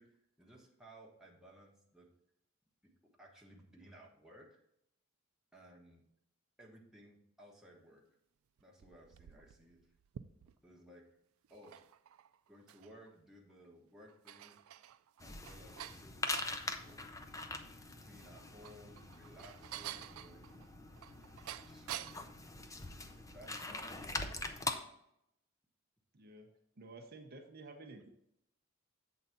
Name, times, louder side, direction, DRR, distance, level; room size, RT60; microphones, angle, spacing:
voice 1, 0.0-2.1 3.2-4.6 5.5-6.1 6.6-8.0 8.6-9.9 10.6-11.0 11.5-11.8 12.5-14.6 15.2-17.0 18.0-20.8 21.7-22.4 23.0-24.8, equal, ahead, -2 dB, 1.2 m, -59 dB
sound 1, 8.6-10.8 11.4-13.1 13.5-13.6 14.0-16.6 18.3-22.3, right 11 dB, 80° right, 0.3 m, -49 dB
sound 2, 15.2-24.7, left 2 dB, 15° left, 0.5 m, -43 dB
voice 2, 26.1-28.1, right 2 dB, 50° right, 3 dB, 0.7 m, -53 dB
7.7 x 4.0 x 5.8 m, 0.78 s
head